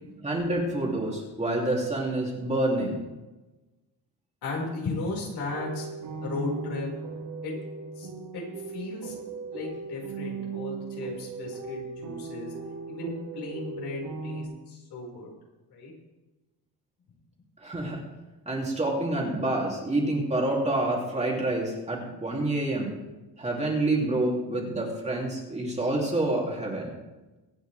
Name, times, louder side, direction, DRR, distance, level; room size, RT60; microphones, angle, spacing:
voice 1, 0.2-3.0 17.6-18.0 18.5-22.9 23.4-26.9, right 2 dB, 15° right, -2 dB, 2.7 m, -27 dB
voice 2, 4.4-5.9 6.2-6.9 7.4-7.5 8.0-12.5 12.9-15.3 15.7-15.9, left 3 dB, 70° left, -3 dB, 5.2 m, -35 dB
sound 1, 5.5-14.4, right 4 dB, 65° right, 3.5 m, -38 dB
24.0 x 9.0 x 3.4 m, 1.1 s
cardioid pair, 155°, 41 cm